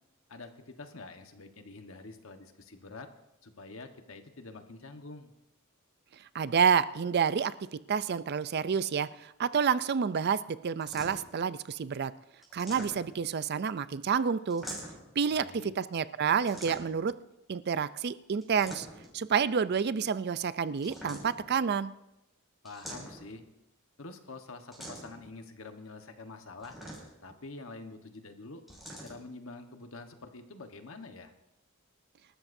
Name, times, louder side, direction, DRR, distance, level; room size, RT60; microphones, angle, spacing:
voice 1, 0.3-3.1 3.4-5.3 15.3-15.7 22.6-23.4 24.0-26.8 27.2-28.6 29.0-31.3, left 3 dB, 65° left, 6 dB, 1.3 m, -46 dB
voice 2, 6.3-7.5 7.9-12.1 12.5-14.6 15.2-17.1 17.5-18.9 19.1-21.9, right 6 dB, 50° right, 15 dB, 0.4 m, -29 dB
sound 1, 10.8-11.4 12.4-13.3 14.5-15.1 16.5-17.1 18.4-19.2 20.8-21.5 22.7-23.4 24.7-25.3 26.6-27.3 28.7-29.2, right 1 dB, ahead, 5.9 m, -44 dB
27.0 x 13.0 x 2.7 m, 0.88 s
head